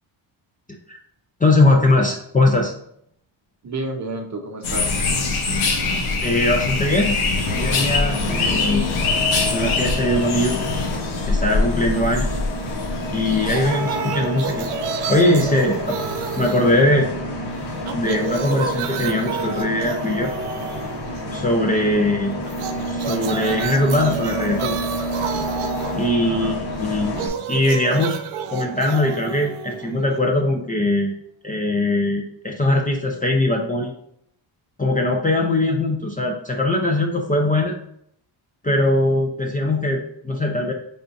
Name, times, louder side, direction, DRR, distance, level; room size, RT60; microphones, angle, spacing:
voice 1, 1.4-2.7 6.2-8.9 9.5-10.6 11.3-12.3 13.1-14.7 15.1-16.0 16.4-17.1 17.9-20.3 21.3-22.4 22.9-24.8 25.9-28.2 28.5-31.2 31.4-33.9 34.8-37.8 38.6-40.7, left 1 dB, 20° left, -1 dB, 0.5 m, -21 dB
voice 2, 3.6-5.0 11.7-12.1 21.8-22.1 26.2-26.6, right 2 dB, 35° right, 3 dB, 0.7 m, -31 dB
sound 1, 4.6-13.7, left 3 dB, 80° left, 1.1 m, -23 dB
Bus, 7.5-27.3, left 1 dB, 50° left, 1.0 m, -29 dB
sound 2, 13.4-17.4 17.7-21.5 22.5-30.5, right 8 dB, 85° right, 0.6 m, -31 dB
5.4 x 3.5 x 2.5 m, 0.70 s
cardioid pair, 130°, 49 cm